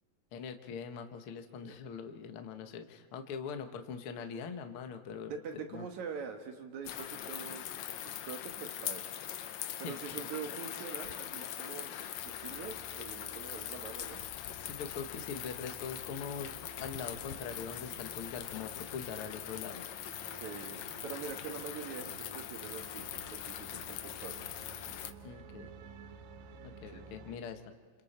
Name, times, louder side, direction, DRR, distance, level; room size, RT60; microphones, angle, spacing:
voice 1, 0.3-5.9 9.6-10.3 14.6-16.5 16.8-19.8 25.2-25.7 26.8-27.6, left 6 dB, 55° left, 6 dB, 1.7 m, -42 dB
voice 2, 5.3-7.7 8.0-9.0 9.8-14.2 20.4-24.5 26.9-27.1 27.4-27.5, right 6 dB, 65° right, 4 dB, 2.5 m, -44 dB
sound 1, 6.9-25.1, left 11 dB, 70° left, 1.8 m, -42 dB
sound 2, 12.2-27.4, right 4 dB, 80° right, 2.8 m, -54 dB
29.5 x 27.5 x 4.4 m, 1.5 s
omnidirectional pair, 4.0 m